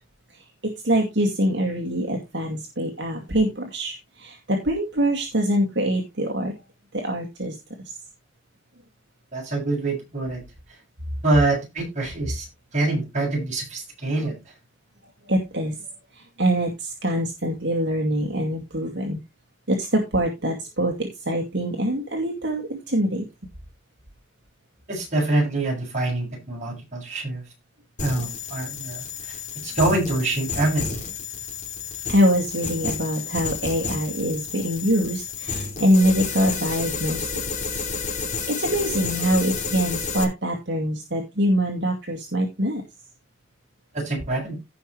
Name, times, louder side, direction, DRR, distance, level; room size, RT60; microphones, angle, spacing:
voice 1, 0.3-6.5 6.9-8.0 15.2-15.9 16.1-19.2 19.7-23.3 32.1-37.3 37.7-37.9 38.2-42.8, equal, 60° right, 1 dB, 2.3 m, -24 dB
voice 2, 9.3-10.4 11.2-12.5 12.7-14.4 24.9-27.4 28.0-29.4 29.6-31.0 43.9-44.6, right 2 dB, 40° right, -1 dB, 7.6 m, -25 dB
sound 1, 28.0-40.2, left 5 dB, 40° left, 2.8 m, -31 dB
16.5 x 5.8 x 3.2 m, 0.23 s
head